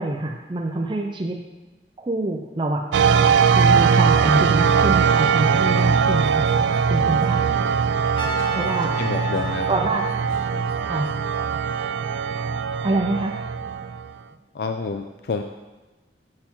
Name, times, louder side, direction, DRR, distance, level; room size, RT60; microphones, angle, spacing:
voice 1, 0.0-1.4 2.0-2.9 3.6-6.5 6.9-7.5 8.6-9.0 9.7-10.2 10.8-11.1 12.8-13.3, right 2 dB, 25° right, 1 dB, 0.5 m, -25 dB
sound 1, 2.9-14.1, right 6 dB, 90° right, 0.3 m, -20 dB
sound 2, 6.3-7.2 7.7-7.8 8.1-11.1, equal, 90° left, 2.8 m, -44 dB
Trumpet, 8.1-11.1, left 1 dB, 25° left, 1.2 m, -35 dB
voice 2, 9.0-9.7 14.5-15.4, left 4 dB, 60° left, 6 dB, 0.4 m, -28 dB
7.6 x 5.9 x 4.4 m, 1.1 s
head